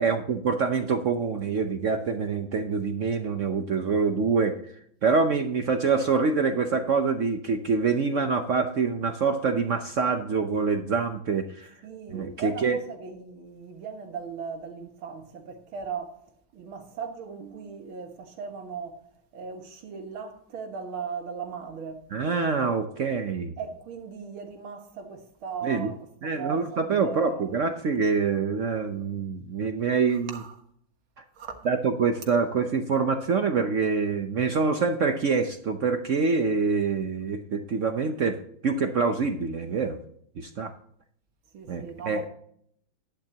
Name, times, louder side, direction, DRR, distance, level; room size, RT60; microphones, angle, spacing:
voice 1, 0.0-4.6 5.0-11.8 12.1-12.8 22.1-23.5 25.6-25.9 26.2-30.4 31.2-31.3 31.6-38.4 38.6-40.0 40.4-40.7 41.7-42.3, right 5 dB, 65° right, 0.7 m, -25 dB
voice 2, 11.8-16.1 16.5-19.0 19.3-22.0 23.6-27.5 30.3-30.5 31.4-31.6 41.5-42.3, right 6 dB, 85° right, 2.3 m, -38 dB
12.0 x 10.5 x 2.8 m
omnidirectional pair, 2.2 m